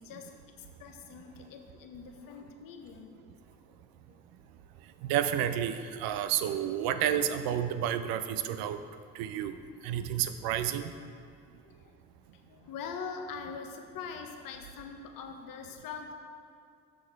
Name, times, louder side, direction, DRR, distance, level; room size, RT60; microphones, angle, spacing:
voice 1, 0.0-3.6 4.1-4.2 11.4-12.0 12.4-16.1, left 5 dB, 70° left, 4 dB, 0.9 m, -43 dB
voice 2, 5.0-8.8 9.1-9.6 9.8-10.9, right 10 dB, 80° right, 10 dB, 0.5 m, -30 dB
6.7 x 6.4 x 4.5 m, 2.3 s
hypercardioid pair, 50°, 35 cm